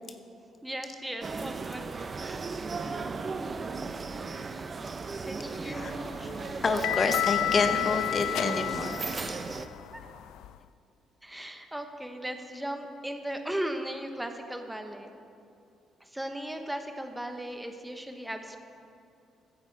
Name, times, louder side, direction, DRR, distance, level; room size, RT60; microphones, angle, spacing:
voice 1, 0.6-1.9 2.2-2.6 4.1-4.9 5.2-6.6 9.9-10.0 11.2-15.1 16.0-18.6, right 1 dB, 5° right, 5 dB, 1.2 m, -38 dB
sound 1, 1.2-9.7, right 4 dB, 35° right, 0.7 m, -36 dB
sound 2, 5.7-10.6, left 13 dB, 90° left, 0.3 m, -32 dB
voice 2, 6.6-9.3, left 4 dB, 40° left, 7 dB, 0.9 m, -29 dB
16.0 x 10.0 x 4.7 m, 2.6 s
cardioid pair, 90°, 0 cm